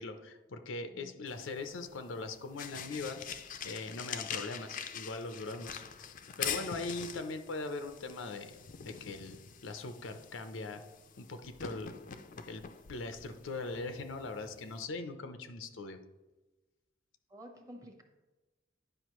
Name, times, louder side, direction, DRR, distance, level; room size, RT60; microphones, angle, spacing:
voice 1, 0.0-3.2 3.6-5.8 6.4-8.5 8.8-10.8 11.2-11.9 12.5-12.6 12.9-16.0, left 3 dB, 90° left, 7 dB, 0.7 m, -40 dB
sound 1, 1.3-14.8, left 7 dB, 45° left, 0.4 m, -44 dB
voice 2, 17.3-18.0, equal, 20° right, 3 dB, 0.9 m, -50 dB
9.9 x 5.1 x 3.1 m, 1.1 s
head